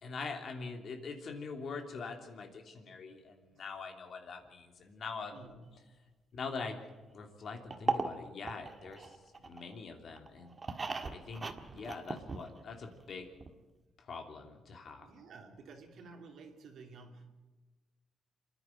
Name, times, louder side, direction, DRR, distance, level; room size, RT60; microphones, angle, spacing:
voice 1, 0.0-5.5 6.3-6.8 7.1-9.2 9.4-10.6 11.1-13.3 14.0-15.1, left 4 dB, 55° left, 4 dB, 3.0 m, -43 dB
voice 2, 5.3-5.6 15.0-17.3, right 4 dB, 70° right, 4 dB, 2.9 m, -52 dB
sound 1, 7.7-9.7 10.2-12.8 13.1-13.2 13.4-13.5, right 4 dB, 30° right, 1.6 m, -37 dB
27.0 x 10.5 x 9.1 m, 1.2 s
cardioid pair, 90°, 0 cm